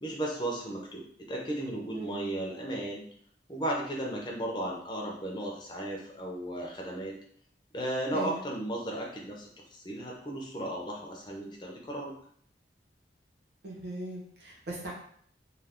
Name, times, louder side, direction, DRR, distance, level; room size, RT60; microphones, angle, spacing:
voice 1, 0.0-3.0 3.5-7.2 7.7-12.1, right 1 dB, 25° left, -2 dB, 0.6 m, -35 dB
voice 2, 1.9-2.3 8.1-8.4 13.6-14.9, right 1 dB, 70° right, -3 dB, 1.0 m, -39 dB
2.5 x 2.4 x 3.5 m, 0.63 s
head